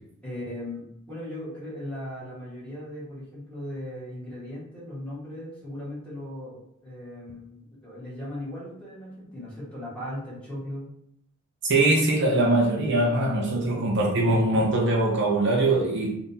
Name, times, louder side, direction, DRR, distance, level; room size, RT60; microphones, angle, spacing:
voice 1, 0.2-10.9 13.5-13.9, left 1 dB, 5° left, -9 dB, 1.4 m, -38 dB
voice 2, 11.6-16.2, right 2 dB, 55° right, -1 dB, 0.5 m, -22 dB
3.6 x 2.5 x 2.7 m, 0.73 s
head